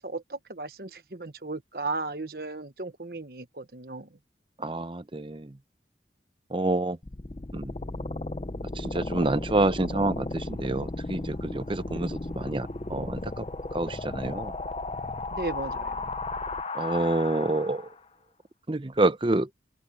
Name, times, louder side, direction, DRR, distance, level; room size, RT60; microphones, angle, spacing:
voice 1, 0.0-4.1 15.3-16.1, right 3 dB, 55° right, 1.3 m, -35 dB
voice 2, 4.6-5.5 6.5-7.0 7.5-7.7 8.8-13.4 13.7-14.5 16.7-17.9 18.7-19.5, right 2 dB, 30° right, 0.7 m, -27 dB
sound 1, 7.0-18.0, left 2 dB, 35° left, 0.7 m, -35 dB
open air
head